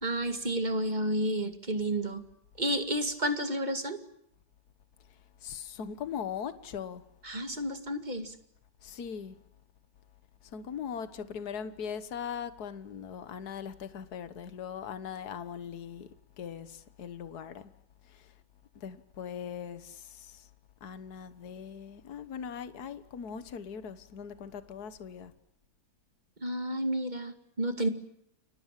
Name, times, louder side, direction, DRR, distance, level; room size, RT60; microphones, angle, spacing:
voice 1, 0.0-2.2 2.6-4.0 7.2-8.3 26.4-27.9, right 1 dB, 25° right, 2.2 m, -31 dB
voice 2, 5.4-7.0 8.8-9.4 10.5-16.1 16.4-17.7 18.1-18.3 18.8-20.5 20.8-25.3, left 7 dB, 70° left, 1.8 m, -40 dB
30.0 x 24.0 x 7.5 m
omnidirectional pair, 1.8 m